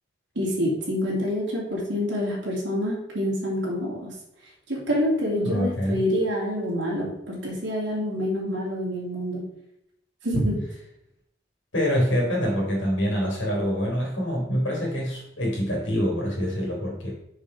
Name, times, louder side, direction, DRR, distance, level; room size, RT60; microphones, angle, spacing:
voice 1, 0.3-4.1 4.7-9.4 10.2-10.6, equal, 65° right, -4 dB, 2.8 m, -27 dB
voice 2, 5.4-6.0 11.7-17.1, equal, 80° left, -3 dB, 2.9 m, -25 dB
6.3 x 5.6 x 4.8 m, 0.80 s
head